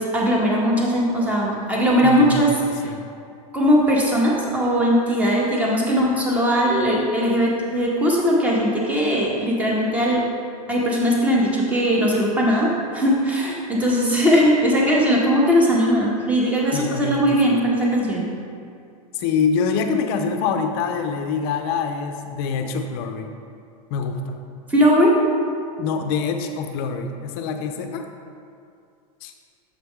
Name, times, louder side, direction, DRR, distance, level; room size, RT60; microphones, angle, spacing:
voice 1, 0.0-2.5 3.5-10.2 10.7-18.3 24.7-25.2, equal, 5° right, -3 dB, 0.7 m, -19 dB
voice 2, 2.0-3.1 16.7-17.3 19.1-23.3 23.9-24.2 25.8-28.0 29.2-29.3, left 5 dB, 40° left, 6 dB, 0.5 m, -25 dB
7.0 x 4.5 x 3.6 m, 2.4 s
supercardioid pair, 160°, 20 cm